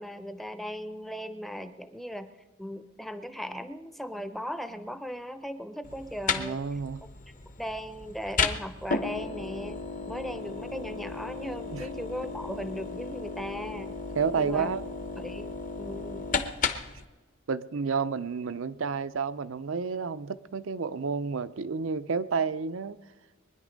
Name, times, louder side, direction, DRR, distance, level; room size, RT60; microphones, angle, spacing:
voice 1, 0.0-2.3 2.6-6.6 7.6-14.0 14.4-14.7 15.1-16.2, equal, ahead, 0.7 m, -38 dB
sound 1, 5.8-17.0, left 5 dB, 40° left, 1.0 m, -34 dB
voice 2, 6.4-7.0 11.7-11.9 14.2-14.8 17.5-23.0, right 5 dB, 70° right, 0.5 m, -30 dB
23.0 x 10.0 x 5.2 m
head